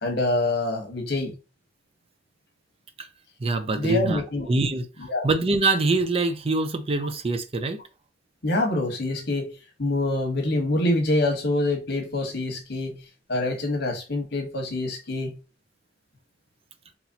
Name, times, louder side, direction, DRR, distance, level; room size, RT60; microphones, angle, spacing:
voice 1, 0.0-1.3 3.8-4.5 5.1-5.3 8.4-9.5 9.8-13.0 13.3-15.4, left 2 dB, 65° left, 1.2 m, -25 dB
voice 2, 3.4-4.2 4.5-4.9 5.2-7.8, right 3 dB, 35° right, 0.5 m, -24 dB
4.1 x 2.9 x 2.7 m
head